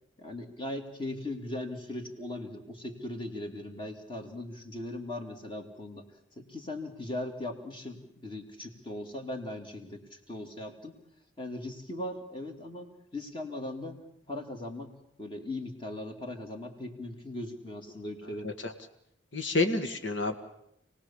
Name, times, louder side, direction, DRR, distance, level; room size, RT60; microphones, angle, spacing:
voice 1, 0.2-6.1 6.4-11.0 11.4-14.0 14.3-14.9 15.2-18.5, left 1 dB, 25° left, 4 dB, 2.5 m, -39 dB
voice 2, 19.3-20.3, left 3 dB, 75° left, 7 dB, 1.9 m, -29 dB
28.0 x 19.0 x 7.2 m, 0.73 s
head